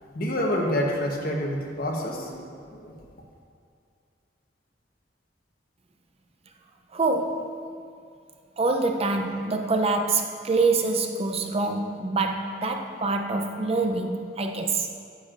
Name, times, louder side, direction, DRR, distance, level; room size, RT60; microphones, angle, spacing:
voice 1, 0.1-3.0, equal, 55° left, 0 dB, 1.1 m, -28 dB
voice 2, 6.9-7.5 8.6-14.9, right 3 dB, 35° right, 4 dB, 0.5 m, -25 dB
9.4 x 8.8 x 2.5 m, 2.3 s
head